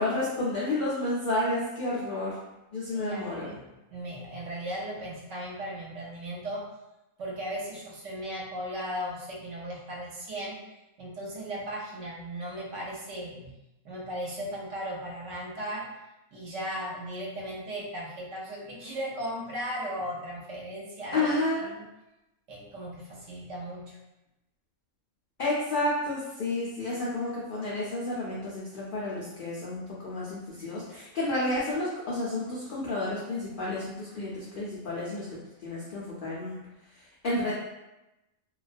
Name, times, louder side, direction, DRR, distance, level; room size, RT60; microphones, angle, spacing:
voice 1, 0.0-2.4 2.7-3.6 21.1-21.7 25.4-36.6 37.0-37.6, left 2 dB, 90° left, -7 dB, 0.4 m, -31 dB
voice 2, 2.9-6.7 7.2-10.6 11.0-13.5 13.8-15.9 16.3-21.8 22.5-24.0, equal, 65° right, -4 dB, 0.8 m, -37 dB
2.3 x 2.2 x 2.4 m, 0.97 s
omnidirectional pair, 1.5 m